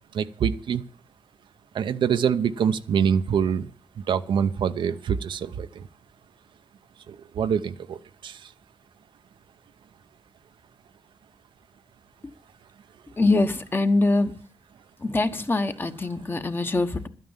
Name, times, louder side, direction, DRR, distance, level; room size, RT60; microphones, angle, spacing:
voice 1, 0.1-0.8 1.7-3.7 4.0-5.9 7.1-8.5, right 7 dB, 80° right, 11 dB, 0.7 m, -25 dB
voice 2, 13.2-14.3 15.0-17.1, left 2 dB, 25° left, 9 dB, 1.1 m, -23 dB
12.0 x 9.3 x 7.2 m, 0.41 s
cardioid pair, 100°, 8 cm